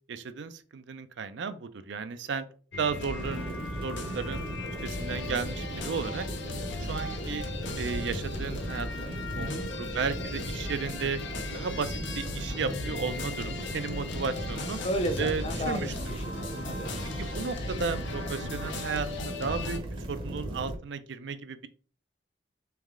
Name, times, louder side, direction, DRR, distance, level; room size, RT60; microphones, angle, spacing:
voice 1, 0.1-2.4 2.8-4.4 4.8-6.3 6.9-7.5 7.8-11.2 11.5-14.8 15.2-15.9 17.2-19.8 20.1-21.7, right 5 dB, 80° right, 0.4 m, -34 dB
sound 1, 2.7-19.8, left 3 dB, 90° left, 0.7 m, -38 dB
sound 2, 3.2-20.8, right 1 dB, 30° right, 0.7 m, -37 dB
voice 2, 9.3-9.7 14.8-16.9, equal, 30° left, 0.6 m, -33 dB
3.4 x 3.1 x 3.6 m
head